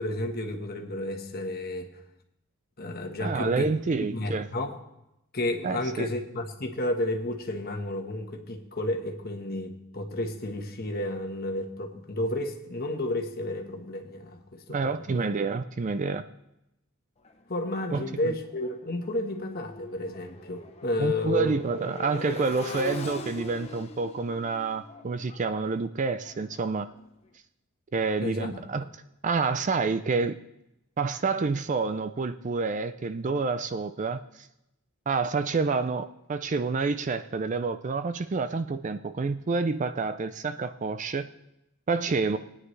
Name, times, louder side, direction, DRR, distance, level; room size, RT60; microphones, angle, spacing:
voice 1, 0.0-1.9 2.8-3.7 4.1-4.7 5.3-14.8 15.1-15.3 17.5-21.5 28.2-28.6, left 1 dB, 45° left, 4 dB, 1.3 m, -31 dB
voice 2, 3.2-4.5 5.6-6.1 14.7-16.2 17.9-18.0 21.0-26.9 27.9-28.8 29.2-30.4 31.0-34.2 35.1-41.3 41.9-42.4, right 4 dB, 35° right, 11 dB, 0.4 m, -28 dB
Motorcycle, 17.2-27.1, left 2 dB, 30° left, 0.7 m, -42 dB
19.0 x 9.8 x 3.2 m, 0.85 s
head